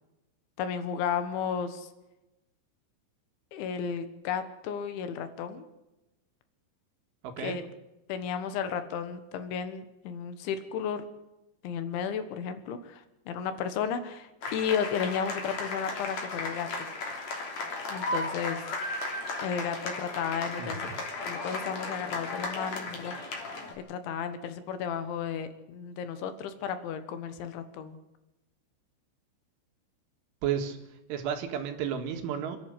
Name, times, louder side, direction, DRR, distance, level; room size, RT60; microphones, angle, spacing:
voice 1, 0.6-1.9 3.5-5.6 7.4-7.6 8.1-11.1 11.6-16.9 17.9-18.6 19.4-20.9 21.3-23.4 23.9-28.0, left 7 dB, 75° left, 10 dB, 3.6 m, -33 dB
voice 2, 7.2-7.6 20.6-20.9 30.4-30.8 31.1-32.6, right 8 dB, 75° right, 5 dB, 4.3 m, -32 dB
sound 1, 14.4-23.7, left 2 dB, 40° left, 3.7 m, -35 dB
28.5 x 11.0 x 8.4 m, 0.97 s
omnidirectional pair, 5.7 m